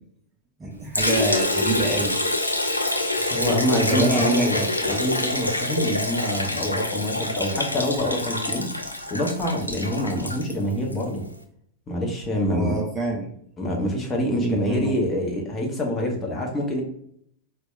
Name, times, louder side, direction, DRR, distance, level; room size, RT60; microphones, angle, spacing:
voice 1, 0.6-2.2 3.9-4.7 12.5-13.3 14.3-15.0, right 2 dB, 20° right, 1 dB, 0.5 m, -26 dB
Liquid, 0.9-11.0, left 2 dB, 85° left, 0.3 m, -26 dB
voice 2, 3.2-8.7 9.1-11.2 11.9-12.8 13.6-16.8, left 1 dB, 20° left, 0 dB, 0.8 m, -26 dB
4.3 x 2.2 x 2.4 m, 0.68 s
figure-of-eight pair, 90°, 0 cm